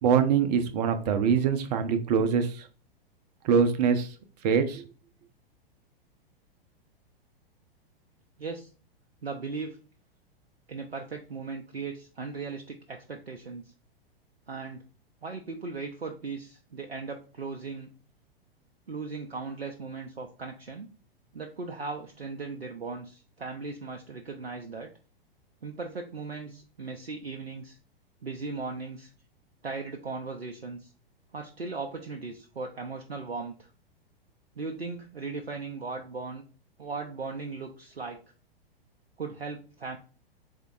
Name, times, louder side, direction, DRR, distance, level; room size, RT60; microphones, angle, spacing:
voice 1, 0.0-2.7 3.4-4.1 4.4-4.8, right 6 dB, 45° right, 9 dB, 0.7 m, -24 dB
voice 2, 8.4-8.7 9.2-9.8 10.7-13.7 14.5-14.8 15.2-17.9 18.9-20.9 21.3-24.9 25.6-27.8 28.2-29.1 29.6-30.9 31.3-33.7 34.6-36.4 36.8-38.2 39.2-40.0, right 4 dB, 90° right, 3 dB, 0.6 m, -37 dB
3.6 x 3.4 x 3.7 m, 0.37 s
figure-of-eight pair, 100°, 30 cm